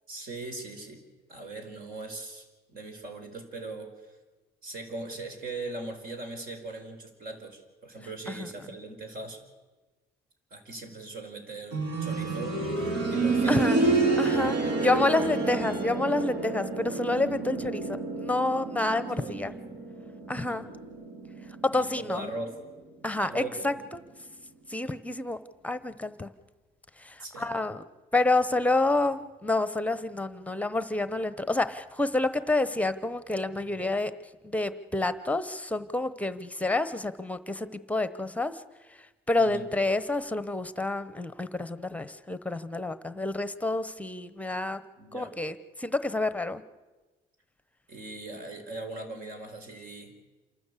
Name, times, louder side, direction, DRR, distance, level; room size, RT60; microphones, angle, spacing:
voice 1, 0.1-1.0 1.3-4.2 4.6-9.4 10.5-13.7 15.2-15.5 19.2-19.8 20.3-20.6 21.7-22.6 23.2-23.8 27.2-27.5 39.4-39.7 45.0-45.3 47.9-50.1, right 2 dB, 60° right, 5 dB, 4.8 m, -40 dB
sound 1, 11.7-22.5 22.8-22.9 23.8-23.9, right 3 dB, 90° right, 4.0 m, -29 dB
voice 2, 13.5-13.8 14.2-19.5 20.3-20.7 21.6-22.3 23.0-24.0 24.7-25.4 25.6-26.3 27.0-27.8 28.1-34.1 34.4-38.6 39.3-44.8 45.1-46.6, left 2 dB, 10° left, 13 dB, 1.0 m, -28 dB
28.0 x 12.5 x 8.4 m, 1.2 s
cardioid pair, 110°, 17 cm